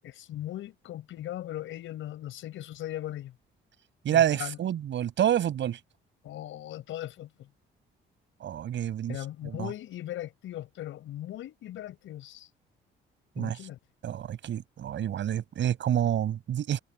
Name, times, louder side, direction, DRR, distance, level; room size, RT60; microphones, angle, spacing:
voice 1, 0.0-3.3 4.1-4.6 6.2-7.5 9.1-12.5 13.4-13.8, left 13 dB, 80° left, 5.8 m, -38 dB
voice 2, 4.0-5.8 8.4-9.2 9.4-9.7 13.4-13.6 14.0-16.8, right 10 dB, 70° right, 5.6 m, -28 dB
cardioid pair, 90°, 20 cm